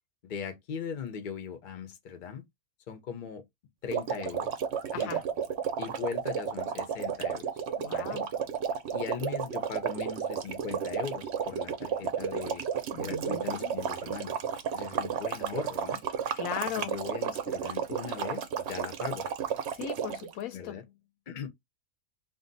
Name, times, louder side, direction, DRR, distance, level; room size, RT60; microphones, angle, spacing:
voice 1, 0.2-2.4 2.9-3.4 3.8-4.6 4.9-5.2 5.8-7.4 7.9-8.2 8.9-12.6 13.0-14.3 14.7-16.0 16.8-19.3 20.5-20.8 21.3-21.5, left 7 dB, 50° left, 0.6 m, -39 dB
sound 1, 3.9-20.3, right 7 dB, 65° right, 0.7 m, -32 dB
voice 2, 7.8-8.3 12.9-13.8 16.3-17.0 19.7-20.8, left 8 dB, 75° left, 1.0 m, -37 dB
2.5 x 2.2 x 3.8 m
omnidirectional pair, 1.5 m